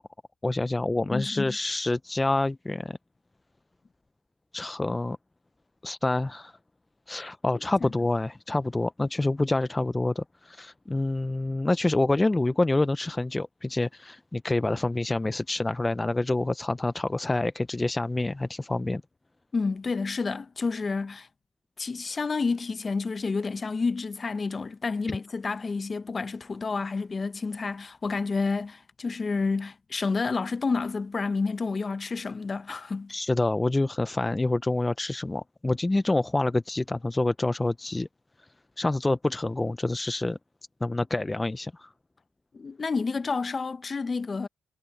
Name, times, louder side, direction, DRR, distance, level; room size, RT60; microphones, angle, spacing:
voice 1, 0.4-3.0 4.5-5.2 5.8-6.5 7.1-19.0 33.1-38.1 38.8-40.4 40.8-41.9, left 2 dB, 15° left, 0.5 m, -27 dB
voice 2, 1.1-1.6 7.8-7.9 19.5-21.3 21.8-33.1 42.5-44.5, left 4 dB, 30° left, 0.9 m, -29 dB
cardioid pair, 90°, 0 cm